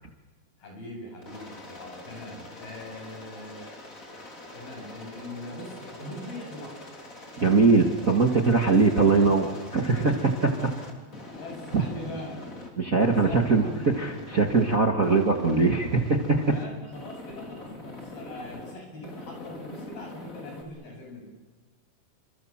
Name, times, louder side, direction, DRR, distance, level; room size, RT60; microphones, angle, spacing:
voice 1, 0.6-3.7 4.5-6.8 7.4-7.6 8.6-10.9 11.3-12.7 13.2-14.0 16.5-21.2, left 1 dB, 85° left, 1 dB, 10.0 m, -41 dB
Aircraft, 1.2-12.7 13.0-14.8 15.0-16.6 16.9-18.7 19.0-20.6, left 2 dB, 20° left, 3.7 m, -44 dB
voice 2, 7.4-9.5 9.7-10.1 12.8-13.6 14.0-16.4, right 4 dB, 35° right, 3 dB, 1.4 m, -21 dB
28.5 x 26.5 x 7.4 m, 1.2 s
omnidirectional pair, 4.2 m